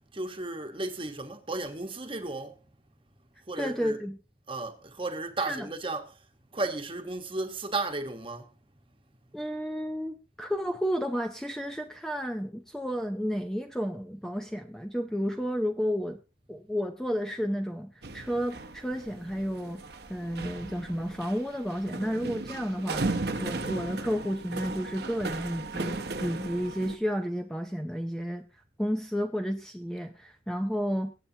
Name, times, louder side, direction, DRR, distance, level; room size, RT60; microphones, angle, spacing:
voice 1, 0.1-2.6 3.5-4.0 4.5-6.2 6.5-8.5, right 2 dB, 30° right, 1.2 m, -34 dB
voice 2, 3.6-4.2 5.5-5.7 9.3-16.2 16.5-19.8 20.1-28.4 28.8-31.1, equal, 5° left, 0.6 m, -32 dB
sound 1, 18.0-27.0, right 3 dB, 55° right, 1.0 m, -36 dB
23.5 x 8.3 x 2.8 m
head